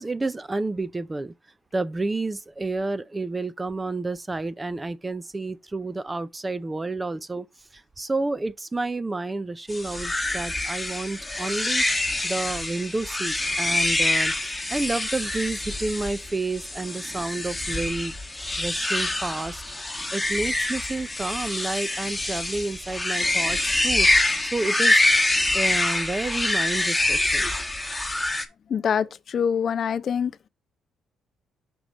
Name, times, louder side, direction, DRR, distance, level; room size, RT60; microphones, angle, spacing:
voice 1, 0.0-1.3 1.7-11.9 12.2-14.3 14.7-18.1 18.6-19.6 20.1-25.0 25.5-27.7, right 2 dB, 20° right, 0.4 m, -30 dB
sound 1, 9.7-28.5, left 2 dB, 10° left, 1.0 m, -25 dB
voice 2, 28.7-30.3, left 7 dB, 55° left, 0.4 m, -25 dB
6.2 x 5.0 x 4.0 m
cardioid pair, 90°, 0 cm